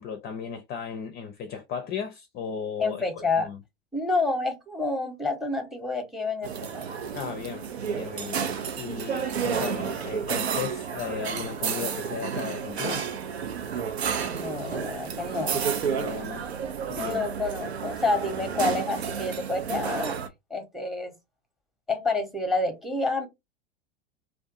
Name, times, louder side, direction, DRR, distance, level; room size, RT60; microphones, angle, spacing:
voice 1, 0.0-3.0 3.4-3.6 7.1-8.5 8.8-13.0 15.8-16.4 16.9-17.2, left 7 dB, 30° left, 0.4 m, -35 dB
voice 2, 2.8-3.5 3.9-6.8 14.2-15.6 17.0-20.2 20.5-21.1 21.9-23.3, left 3 dB, ahead, 0.7 m, -28 dB
sound 1, 6.4-20.3, right 7 dB, 90° right, 0.6 m, -31 dB
2.5 x 2.2 x 2.5 m
hypercardioid pair, 95°, 31 cm